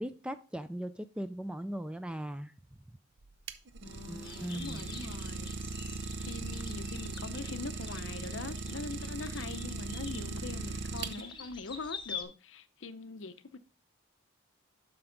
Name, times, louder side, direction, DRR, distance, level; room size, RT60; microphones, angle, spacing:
voice 1, 0.0-2.5 4.1-4.9, equal, 5° right, 0.3 m, -39 dB
Idling, 3.2-11.5, right 4 dB, 55° right, 0.6 m, -39 dB
voice 2, 3.8-5.5 6.2-13.6, left 4 dB, 60° left, 0.6 m, -43 dB
sound 1, 4.2-12.2, left 6 dB, 20° left, 0.8 m, -47 dB
7.8 x 5.9 x 3.8 m
head